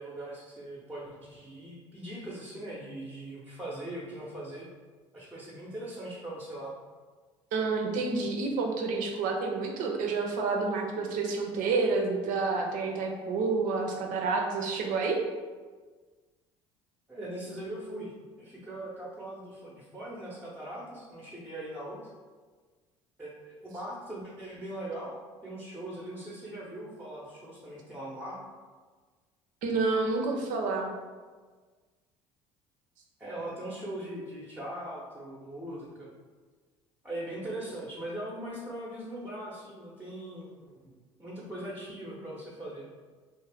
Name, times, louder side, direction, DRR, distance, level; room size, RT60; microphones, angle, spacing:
voice 1, 0.0-4.7 5.1-6.7 17.1-18.1 18.4-22.0 23.2-25.2 25.4-28.4 33.2-36.1 37.0-40.5 41.2-42.8, right 1 dB, 5° right, -6 dB, 0.7 m, -40 dB
voice 2, 7.5-15.2 29.6-30.9, right 4 dB, 60° right, 2 dB, 0.5 m, -29 dB
2.4 x 2.1 x 3.4 m, 1.4 s
hypercardioid pair, 65°, 15 cm